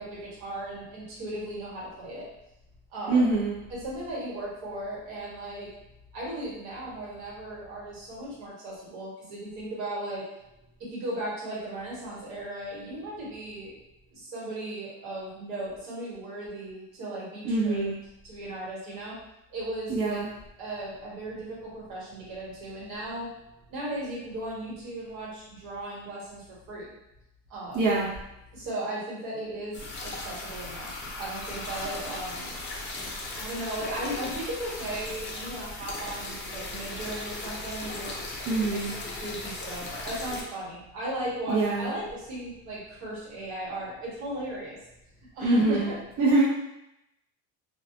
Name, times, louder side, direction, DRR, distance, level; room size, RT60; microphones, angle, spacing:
voice 1, 0.0-2.3 2.9-3.3 3.7-5.7 6.1-10.3 10.8-13.7 14.1-17.9 18.2-19.1 19.5-20.3 20.6-23.3 23.7-26.9 27.5-27.8 28.5-30.9 31.1-32.5 33.3-38.1 38.7-44.8 45.3-45.9, right 1 dB, 90° right, -6 dB, 1.3 m, -36 dB
voice 2, 3.1-3.5 17.4-17.9 19.9-20.3 27.7-28.1 38.5-38.9 41.5-41.9 45.4-45.9 46.2-46.4, right 3 dB, 65° right, -7 dB, 0.7 m, -24 dB
sound 1, 29.7-40.4, left 2 dB, 30° left, 0.5 m, -37 dB
2.2 x 2.1 x 2.8 m, 0.87 s
cardioid pair, 120°, 39 cm